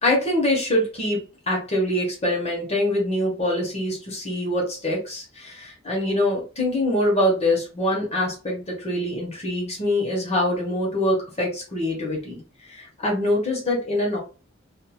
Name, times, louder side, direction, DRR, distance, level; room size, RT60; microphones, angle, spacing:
voice 1, 0.0-14.2, left 1 dB, 30° left, -2 dB, 1.1 m, -24 dB
2.9 x 2.7 x 2.3 m, 0.34 s
head